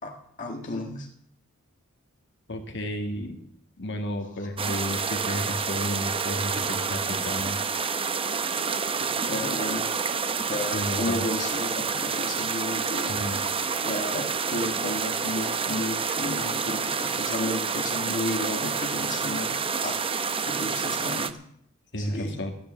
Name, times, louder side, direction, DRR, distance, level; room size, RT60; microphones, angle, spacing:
voice 1, 0.0-1.1 9.3-9.9 10.5-13.5 13.8-20.0 20.4-21.4 22.0-22.5, left 1 dB, 35° left, 1 dB, 1.6 m, -33 dB
voice 2, 2.5-3.4 3.8-7.6 10.7-11.2 13.1-13.4 21.9-22.5, equal, 55° left, 3 dB, 2.2 m, -32 dB
sound 1, 4.6-21.3, right 5 dB, 25° right, 0.7 m, -28 dB
13.5 x 10.5 x 7.4 m, 0.70 s
head